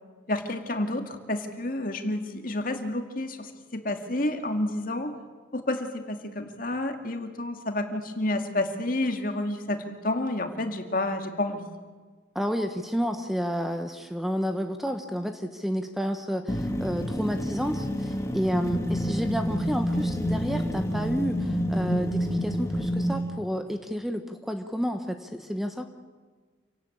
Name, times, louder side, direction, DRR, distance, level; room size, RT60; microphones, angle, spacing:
voice 1, 0.3-5.1 5.5-11.7, left 1 dB, 45° left, 6 dB, 2.2 m, -30 dB
voice 2, 12.3-25.9, equal, ahead, 6 dB, 1.1 m, -30 dB
sound 1, 16.5-23.2, equal, 15° left, 2.0 m, -28 dB
27.5 x 17.5 x 8.7 m, 1.4 s
head